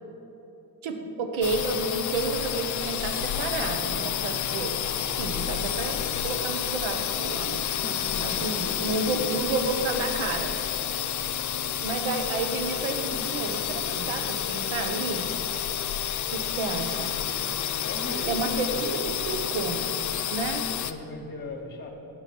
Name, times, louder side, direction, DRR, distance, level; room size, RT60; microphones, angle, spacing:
voice 1, 0.8-6.0 6.2-7.7 8.2-10.5 11.8-15.3 16.3-17.2 18.3-19.9 20.3-20.7, right 3 dB, 80° right, 5 dB, 0.9 m, -31 dB
sound 1, 1.4-20.9, left 9 dB, 40° left, 0.4 m, -30 dB
voice 2, 7.7-8.7 9.0-9.7 17.8-19.3 20.8-21.9, left 2 dB, 20° left, 1 dB, 1.2 m, -39 dB
7.8 x 6.6 x 4.2 m, 2.9 s
supercardioid pair, 55°, 47 cm